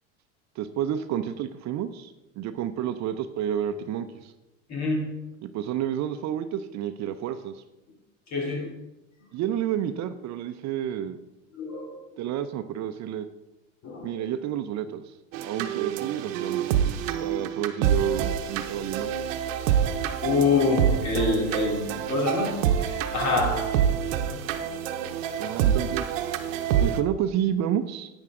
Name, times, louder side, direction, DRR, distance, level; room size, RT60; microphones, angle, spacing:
voice 1, 0.6-4.3 5.4-7.6 9.3-11.2 12.2-13.3 14.0-15.0 15.4-16.7 17.2-19.1 25.4-26.1 26.8-28.1, right 10 dB, 45° right, 0.7 m, -30 dB
voice 2, 4.7-5.1 8.3-8.7 11.5-12.0 13.8-14.2 20.2-23.8 24.3-24.4, left 3 dB, 45° left, 3.0 m, -26 dB
sound 1, 15.3-27.0, right 9 dB, 80° right, 0.9 m, -27 dB
10.5 x 9.0 x 3.7 m
hypercardioid pair, 95°, 38 cm